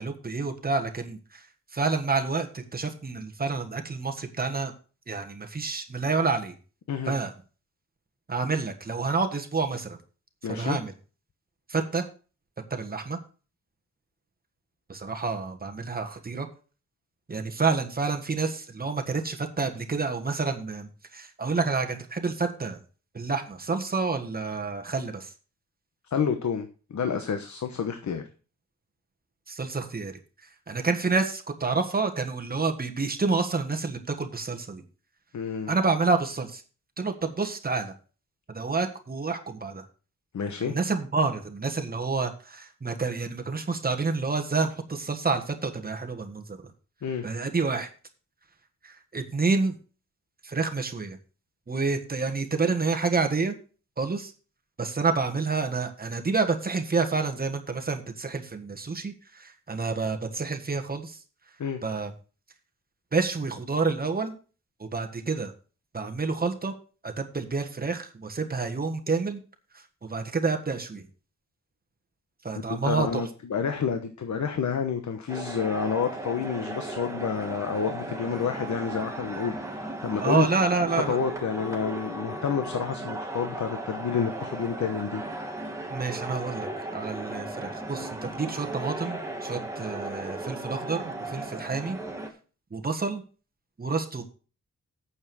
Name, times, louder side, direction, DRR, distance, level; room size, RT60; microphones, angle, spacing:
voice 1, 0.0-1.5 1.7-4.7 5.1-6.5 7.1-7.3 8.3-10.0 10.5-10.9 11.7-12.0 12.7-13.2 14.9-16.5 17.3-22.8 23.1-25.3 29.5-30.1 30.7-34.8 35.7-36.6 37.0-37.9 38.5-39.8 40.6-46.7 47.2-47.9 48.8-49.8 50.4-51.2 51.7-53.5 54.0-54.3 54.8-61.2 61.8-62.1 63.1-64.3 64.8-65.5 65.9-66.7 67.0-69.4 69.7-71.0 72.4-73.2 80.2-81.2 85.9-92.0 92.7-93.2 93.8-94.2, right 4 dB, 30° right, 4 dB, 1.5 m, -28 dB
voice 2, 10.4-10.8 26.1-28.2 35.3-35.7 40.3-40.7 47.0-47.2 61.6-61.8 72.7-80.5 80.9-85.2, left 6 dB, 70° left, 7 dB, 1.1 m, -29 dB
sound 1, 75.3-92.3, right 2 dB, 10° right, 1.6 m, -36 dB
8.8 x 7.1 x 6.2 m, 0.37 s
wide cardioid pair, 165°, 29 cm